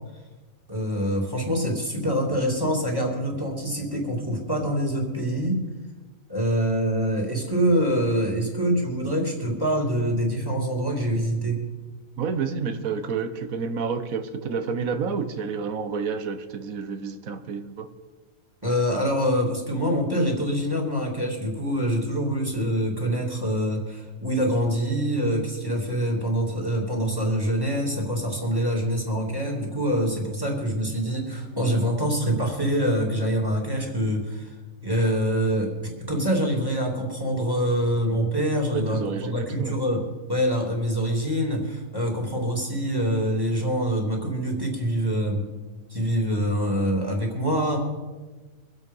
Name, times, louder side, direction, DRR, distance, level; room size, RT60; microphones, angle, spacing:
voice 1, 0.7-5.6 6.3-11.6 18.6-34.5 34.8-45.4 45.9-47.8, equal, 15° right, 0 dB, 2.9 m, -25 dB
voice 2, 12.2-17.9 38.7-39.8, right 5 dB, 85° right, 9 dB, 1.4 m, -29 dB
24.0 x 8.0 x 5.5 m, 1.3 s
omnidirectional pair, 1.4 m